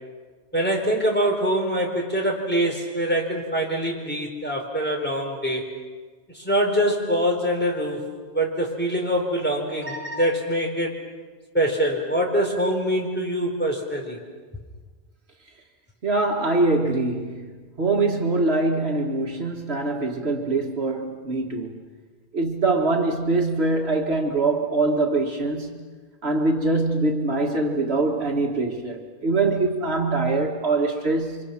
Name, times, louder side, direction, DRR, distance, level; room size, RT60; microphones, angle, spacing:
voice 1, 0.5-5.7 6.4-8.0 8.3-11.0 11.5-14.2, equal, 10° left, -1 dB, 4.3 m, -24 dB
voice 2, 16.0-17.5 17.8-21.8 22.3-25.8 26.2-31.4, right 2 dB, 65° right, 2 dB, 2.2 m, -23 dB
29.5 x 25.5 x 6.0 m, 1.5 s
omnidirectional pair, 1.1 m